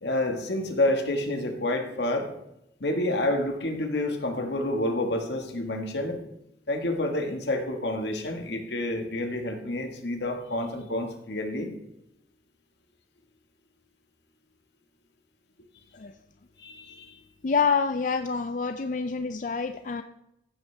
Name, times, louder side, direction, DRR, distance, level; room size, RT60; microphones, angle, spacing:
voice 1, 0.0-2.3 2.8-6.2 6.7-11.7 16.6-17.2, left 1 dB, 75° left, 4 dB, 1.8 m, -28 dB
voice 2, 17.4-20.0, left 5 dB, 45° left, 9 dB, 0.4 m, -27 dB
15.0 x 8.3 x 3.5 m, 0.83 s
head